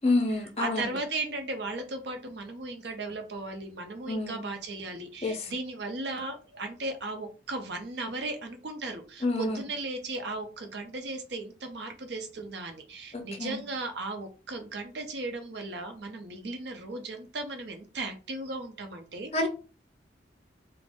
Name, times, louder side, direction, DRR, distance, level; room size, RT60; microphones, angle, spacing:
voice 1, 0.0-0.9 4.1-4.5 5.2-5.5 9.2-9.6 13.1-13.6 19.3-19.5, left 2 dB, 30° left, 5 dB, 0.5 m, -28 dB
voice 2, 0.6-19.5, right 2 dB, 60° right, 5 dB, 0.6 m, -36 dB
2.5 x 2.0 x 3.4 m, 0.35 s
head